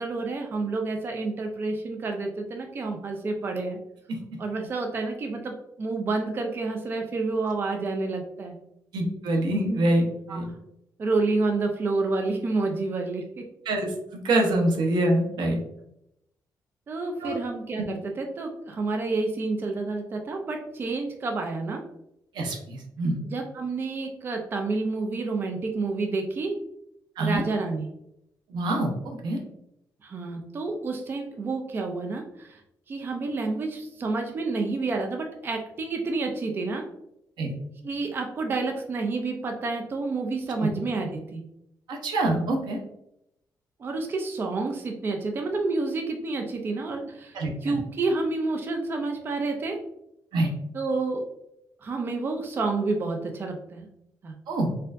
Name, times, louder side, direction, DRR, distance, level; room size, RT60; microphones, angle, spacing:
voice 1, 0.0-3.8 4.4-8.6 10.3-10.6 11.0-13.4 16.9-21.8 23.2-26.6 27.2-27.9 30.0-32.6 32.9-36.8 37.8-41.4 43.8-49.8 50.7-51.2 51.8-53.9 54.2-54.4, right 3 dB, 30° right, 3 dB, 0.4 m, -29 dB
voice 2, 4.1-4.4 8.9-10.5 13.7-15.6 17.2-17.4 17.8-17.9 22.3-23.2 27.2-27.4 28.5-29.4 37.4-37.5 40.6-40.7 41.9-42.8 47.3-47.5 50.3-50.5 54.5-54.7, right 1 dB, 85° right, 1 dB, 0.8 m, -25 dB
4.3 x 2.4 x 2.5 m, 0.79 s
wide cardioid pair, 175°, 7 cm